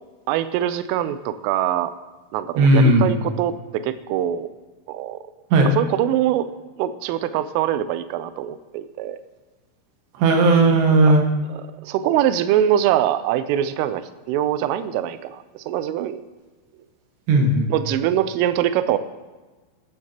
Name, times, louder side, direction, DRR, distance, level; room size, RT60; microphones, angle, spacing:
voice 1, 0.3-1.9 2.3-4.5 4.9-5.2 5.6-6.5 6.8-9.2 11.0-11.1 11.5-14.0 14.3-16.2 17.7-19.0, right 11 dB, 85° right, 12 dB, 3.2 m, -23 dB
voice 2, 2.6-3.1 5.5-5.7 10.2-11.2 17.3-17.7, right 2 dB, 65° right, 1 dB, 3.4 m, -15 dB
14.0 x 14.0 x 2.9 m, 1.2 s
omnidirectional pair, 5.7 m